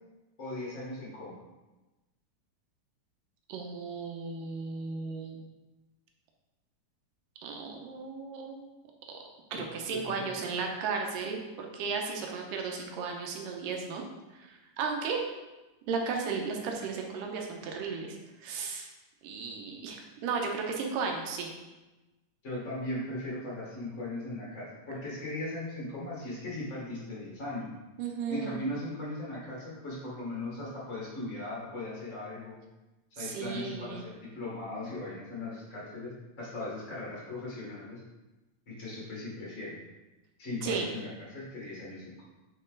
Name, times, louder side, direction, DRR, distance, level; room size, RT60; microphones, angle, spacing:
voice 1, 0.4-1.4 9.5-9.6 9.9-10.3 22.4-27.7 28.3-32.5 33.1-38.0 38.7-39.8 40.4-42.2, left 2 dB, 60° left, -6 dB, 0.7 m, -38 dB
voice 2, 3.5-5.4 7.4-8.7 9.5-14.0 14.4-15.2 15.9-18.2 18.4-18.9 19.2-21.5 28.0-28.6 33.2-34.0 40.6-40.9, right 5 dB, 85° right, 2 dB, 2.4 m, -35 dB
7.8 x 3.9 x 3.8 m, 1.1 s
omnidirectional pair, 3.8 m